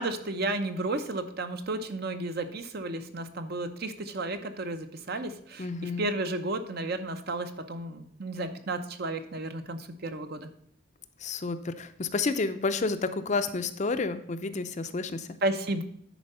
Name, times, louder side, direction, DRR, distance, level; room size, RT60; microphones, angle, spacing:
voice 1, 0.0-10.5 15.4-15.8, right 2 dB, 50° right, 8 dB, 0.8 m, -33 dB
voice 2, 5.6-6.1 11.2-15.3, left 3 dB, 35° left, 10 dB, 0.5 m, -30 dB
10.0 x 4.5 x 5.4 m, 0.69 s
head